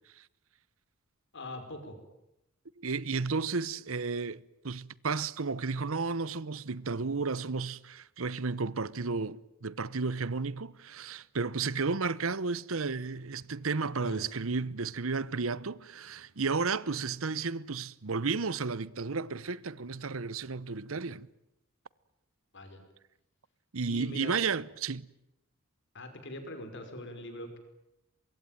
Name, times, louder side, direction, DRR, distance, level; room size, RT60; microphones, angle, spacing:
voice 1, 1.3-2.0 14.0-14.2 22.5-22.8 23.9-24.4 25.9-27.6, left 1 dB, 60° left, 5.6 m, -42 dB
voice 2, 2.8-21.3 23.7-25.1, right 4 dB, 70° right, 0.9 m, -33 dB
24.5 x 23.0 x 9.2 m
head